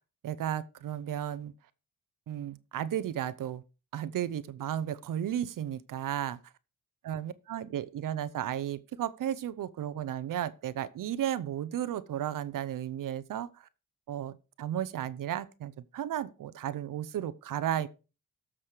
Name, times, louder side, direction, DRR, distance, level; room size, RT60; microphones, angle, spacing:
voice 1, 0.2-1.5 2.3-3.6 3.9-6.4 7.0-13.7 14.1-17.9, right 10 dB, 70° right, 0.8 m, -34 dB
13.5 x 6.3 x 4.9 m
cardioid pair, 85°, 34 cm